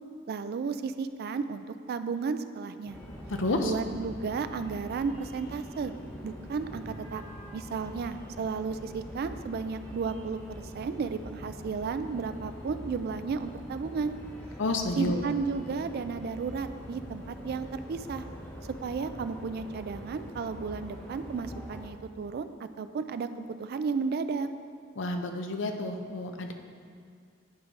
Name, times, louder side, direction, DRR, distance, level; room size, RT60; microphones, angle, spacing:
voice 1, 0.3-3.0 3.6-5.9 6.2-7.2 7.5-14.1 15.0-18.3 18.8-24.5, right 5 dB, 55° right, 11 dB, 0.3 m, -33 dB
sound 1, 2.9-21.9, equal, 10° left, 0.9 m, -44 dB
voice 2, 3.3-3.7 14.6-15.2 25.0-26.5, left 2 dB, 70° left, 5 dB, 0.6 m, -30 dB
10.0 x 4.7 x 3.7 m, 2.3 s
head